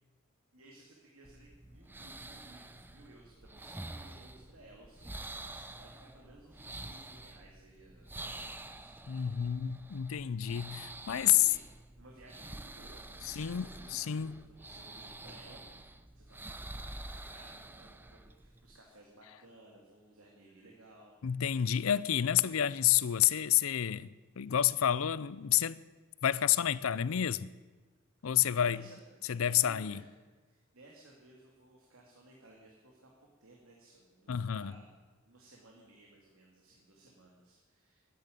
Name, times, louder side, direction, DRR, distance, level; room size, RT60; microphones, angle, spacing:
voice 1, 0.5-9.0 11.0-11.7 12.0-16.5 16.8-21.2 28.2-29.0 29.4-30.1 30.5-33.1 33.4-35.0 35.2-38.1, right 1 dB, 85° right, 2.5 m, -58 dB
sound 1, 1.2-18.8, right 2 dB, 10° right, 0.6 m, -48 dB
voice 2, 9.1-11.4 13.2-13.6 13.9-14.4 21.2-25.8 26.2-27.5 28.2-28.8 29.3-30.0 34.3-34.7, left 10 dB, 80° left, 0.5 m, -29 dB
12.0 x 10.5 x 9.2 m
head